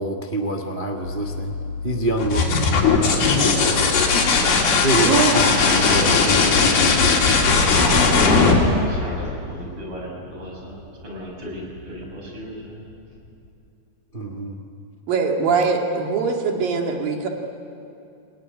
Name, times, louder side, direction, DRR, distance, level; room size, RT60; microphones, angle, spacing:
voice 1, 0.0-1.5 1.8-2.7 4.8-6.4 14.1-14.6, right 2 dB, 85° right, 4 dB, 0.4 m, -26 dB
sound 1, 1.0-7.6, left 5 dB, 55° left, 2.7 m, -31 dB
sound 2, 2.2-9.8 11.5-12.1, left 4 dB, 85° left, 4.8 m, -18 dB
voice 2, 3.2-3.6 4.1-4.7 5.6-6.8 7.6-12.9, right 1 dB, 35° right, -1 dB, 6.7 m, -33 dB
voice 3, 4.9-5.3 15.1-17.3, right 5 dB, 65° right, 1 dB, 4.0 m, -22 dB
29.5 x 19.5 x 9.6 m, 2.7 s
omnidirectional pair, 4.3 m